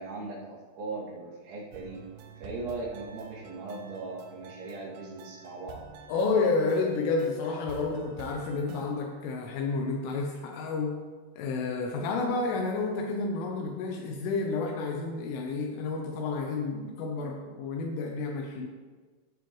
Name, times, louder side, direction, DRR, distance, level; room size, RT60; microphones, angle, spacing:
voice 1, 0.0-2.1 2.4-5.8, right 3 dB, 65° right, -6 dB, 4.5 m, -39 dB
sound 1, 1.7-9.0, right 6 dB, 85° right, 3.4 m, -49 dB
voice 2, 6.1-11.0 11.4-18.7, left 3 dB, 80° left, 1 dB, 3.2 m, -30 dB
16.0 x 7.4 x 3.1 m, 1.4 s
omnidirectional pair, 5.7 m